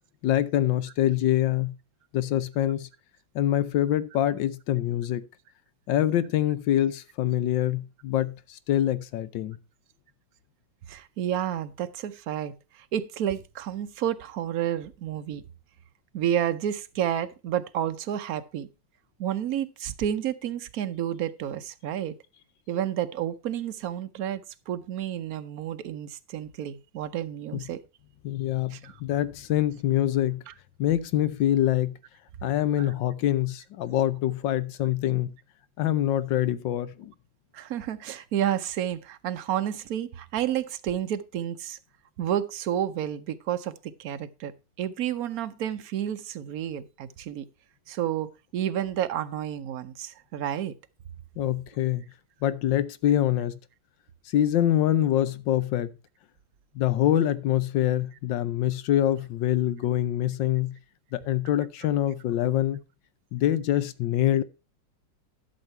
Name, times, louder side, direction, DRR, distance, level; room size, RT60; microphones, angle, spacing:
voice 1, 0.2-1.7 2.1-2.9 3.3-5.2 5.9-8.3 8.7-9.6 27.5-27.6 28.2-30.4 30.8-31.9 32.4-35.3 35.8-37.1 51.4-52.0 52.4-53.6 54.3-55.9 56.8-60.7 61.1-62.8 63.3-64.4, left 12 dB, 85° left, 1.5 m, -25 dB
voice 2, 10.9-15.4 16.1-18.7 19.2-22.2 22.7-27.8 28.7-29.0 30.5-30.6 32.8-32.9 37.5-41.8 42.2-47.5 47.9-50.7, right 10 dB, 60° right, 1.1 m, -30 dB
11.5 x 6.5 x 4.4 m
omnidirectional pair, 2.0 m